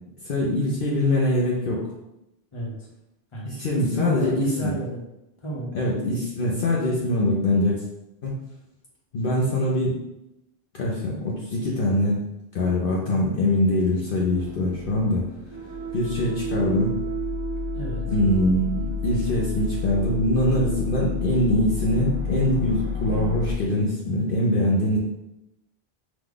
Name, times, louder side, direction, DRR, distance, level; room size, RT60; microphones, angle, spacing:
voice 1, 0.2-1.9 3.4-4.7 5.7-7.8 8.2-8.3 9.1-10.0 10.7-12.2 12.5-15.2 15.9-17.0 18.1-25.0, left 1 dB, 60° left, -4 dB, 0.9 m, -23 dB
voice 2, 2.5-2.9 3.3-5.0 5.4-5.7 17.7-18.0, right 1 dB, 30° left, -3 dB, 1.0 m, -32 dB
sound 1, 14.3-23.5, left 3 dB, 35° right, 0.5 m, -30 dB
4.9 x 2.3 x 3.8 m, 0.88 s
omnidirectional pair, 1.0 m